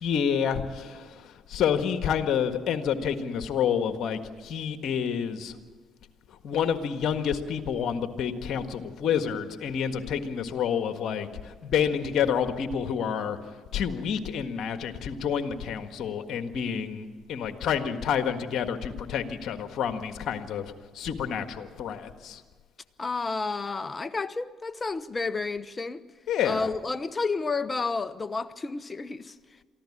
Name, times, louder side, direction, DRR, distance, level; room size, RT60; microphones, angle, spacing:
voice 1, 0.0-5.5 6.4-13.4 13.7-22.4 26.3-26.7, left 8 dB, 65° left, 1.6 m, -29 dB
voice 2, 23.0-26.0 26.4-29.3, left 4 dB, 30° left, 1.0 m, -31 dB
23.5 x 15.0 x 8.7 m
hypercardioid pair, 60°, 0 cm